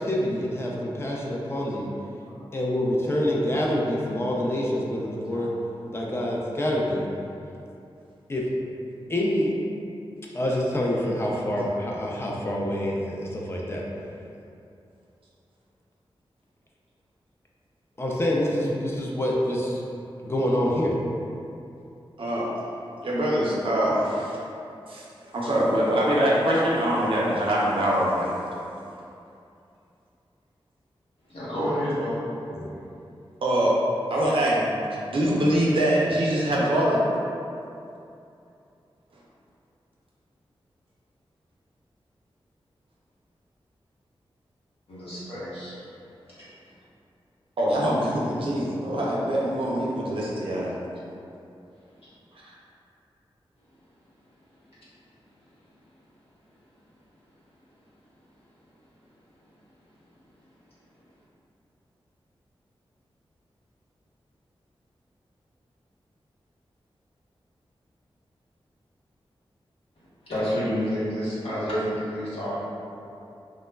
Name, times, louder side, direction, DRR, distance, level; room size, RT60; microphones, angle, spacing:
voice 1, 0.0-1.9 2.5-5.5 5.9-7.1 8.3-8.5 9.1-9.5 10.3-13.8 18.0-19.8 20.2-21.0 32.5-32.7, left 1 dB, 25° left, -3 dB, 0.3 m, -26 dB
voice 2, 22.2-22.5 23.0-24.4 24.9-25.0 25.3-28.4 33.4-33.7 34.1-37.0 47.6-50.8 52.4-52.5, right 1 dB, 65° right, -5 dB, 0.5 m, -24 dB
voice 3, 31.3-32.2 44.9-45.8 46.4-46.5 70.2-72.6, equal, 80° left, -11 dB, 1.0 m, -29 dB
2.9 x 2.2 x 2.2 m, 2.7 s
wide cardioid pair, 115°, 10 cm